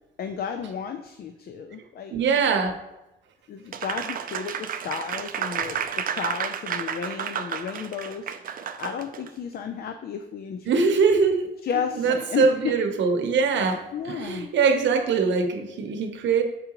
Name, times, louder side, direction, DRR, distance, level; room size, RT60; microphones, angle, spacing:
voice 1, 0.2-2.1 3.5-8.3 8.8-10.9 11.6-12.8 13.9-14.5, left 7 dB, 50° left, 7 dB, 0.5 m, -33 dB
voice 2, 2.1-2.7 10.7-11.5 11.9-16.4, right 5 dB, 65° right, 5 dB, 0.8 m, -22 dB
Applause, 3.7-9.3, right 8 dB, 45° right, 0.4 m, -31 dB
6.8 x 4.7 x 3.0 m, 0.97 s
cardioid pair, 90°, 20 cm